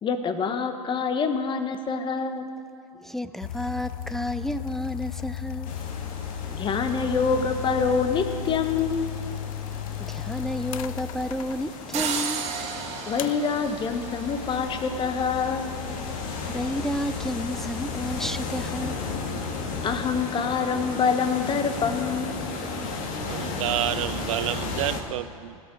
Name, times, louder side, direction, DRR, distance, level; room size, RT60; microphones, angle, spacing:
voice 1, 0.0-2.5 6.5-9.1 13.1-15.7 19.8-22.3, left 5 dB, 25° left, 8 dB, 1.2 m, -26 dB
voice 2, 2.9-5.7 10.0-12.4 14.9-15.1 16.1-19.5, equal, ahead, 11 dB, 0.4 m, -32 dB
sound 1, 3.4-12.0 13.2-20.2, left 11 dB, 70° left, 0.5 m, -36 dB
sound 2, 5.6-25.0, left 3 dB, 45° left, 2.1 m, -35 dB
sound 3, 11.9-14.8, right 7 dB, 35° right, 1.7 m, -33 dB
voice 3, 23.3-25.6, right 14 dB, 60° right, 15 dB, 0.5 m, -29 dB
17.5 x 6.6 x 8.5 m, 2.5 s
hypercardioid pair, 100°, 18 cm